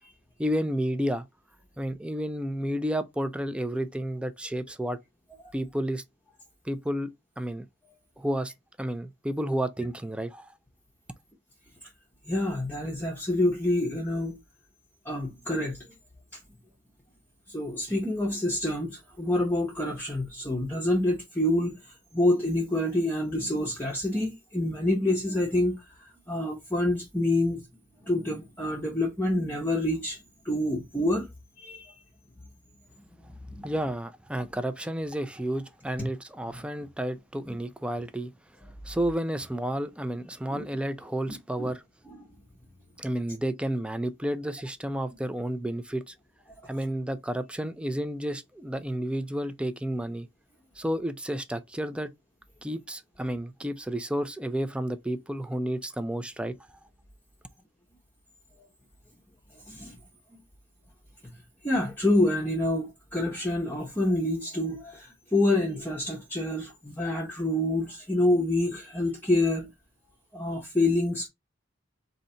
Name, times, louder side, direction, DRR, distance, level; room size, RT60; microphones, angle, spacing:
voice 1, 0.4-1.3 1.8-5.0 5.5-6.0 6.6-7.1 7.4-7.7 8.2-8.5 8.8-10.5 33.6-38.3 38.8-41.8 43.0-46.1 46.7-50.3 50.8-52.1 52.6-56.6, right 1 dB, 5° right, 0.4 m, -31 dB
voice 2, 12.3-14.4 15.0-15.9 17.5-27.6 28.0-30.2 30.4-31.3 31.6-31.9 33.5-33.6 40.5-40.6 41.3-41.7 42.1-42.2 46.6-46.7 58.6-58.7 59.7-60.0 60.3-60.4 61.6-69.7 70.3-71.3, left 1 dB, 10° left, 0.8 m, -27 dB
3.9 x 2.8 x 4.3 m
head